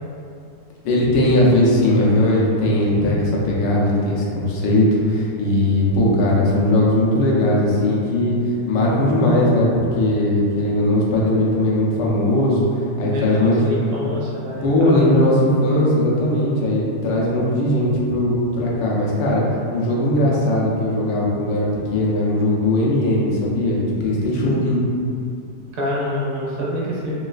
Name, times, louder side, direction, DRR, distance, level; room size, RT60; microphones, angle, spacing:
voice 1, 0.8-8.3 8.7-12.7 13.0-13.6 14.6-19.4 19.7-24.8, left 1 dB, 90° left, -4 dB, 1.3 m, -19 dB
voice 2, 13.1-15.1 25.7-27.2, equal, 70° right, -5 dB, 1.0 m, -26 dB
4.0 x 2.3 x 2.3 m, 2.6 s
omnidirectional pair, 2.0 m